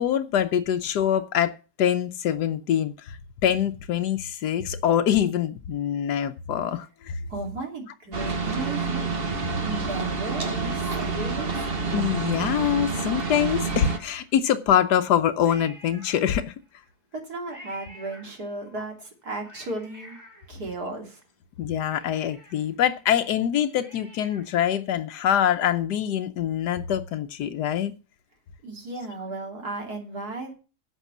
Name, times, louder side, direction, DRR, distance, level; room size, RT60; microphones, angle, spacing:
voice 1, 0.0-7.2 11.9-16.5 21.6-27.9, left 9 dB, 80° left, 1.3 m, -24 dB
voice 2, 7.3-9.1 9.6-11.7 17.1-20.2 20.5-21.2 28.6-30.5, right 2 dB, 70° right, 3.4 m, -35 dB
sound 1, 8.1-14.0, right 4 dB, 40° right, 1.3 m, -28 dB
Cat, 11.0-12.3 12.8-12.9 13.1-14.6 15.4-16.8 17.5-18.8 19.2-21.2 21.6-21.7 21.9-24.7 25.0-25.1, equal, 10° right, 4.3 m, -50 dB
11.0 x 6.7 x 7.2 m
omnidirectional pair, 1.7 m